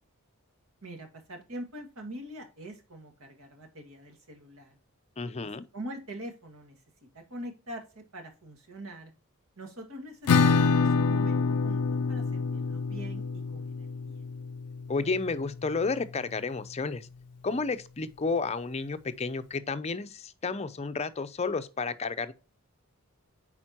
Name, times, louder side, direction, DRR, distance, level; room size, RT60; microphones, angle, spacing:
voice 1, 0.8-4.8 5.4-6.8 7.1-9.1 9.6-14.3, right 1 dB, 70° right, 1.9 m, -43 dB
voice 2, 5.2-5.7 14.9-17.1 17.4-22.3, left 4 dB, 30° left, 0.5 m, -31 dB
Acoustic guitar / Strum, 10.3-15.7, left 4 dB, 85° left, 0.4 m, -27 dB
8.9 x 4.4 x 2.9 m
head